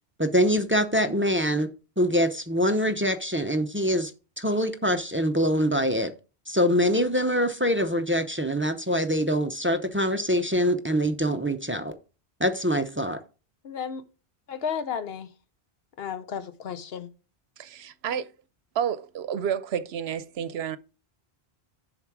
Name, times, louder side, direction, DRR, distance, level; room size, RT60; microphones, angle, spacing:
voice 1, 0.2-1.7 2.0-4.1 4.4-6.1 6.5-12.0 12.4-13.2, equal, 15° right, 0.5 m, -24 dB
voice 2, 13.6-14.0 14.5-15.3 16.0-17.1, left 7 dB, 70° left, 1.0 m, -33 dB
voice 3, 17.6-18.3 18.7-20.8, right 8 dB, 75° right, 0.9 m, -30 dB
7.2 x 5.7 x 4.7 m
omnidirectional pair, 1.1 m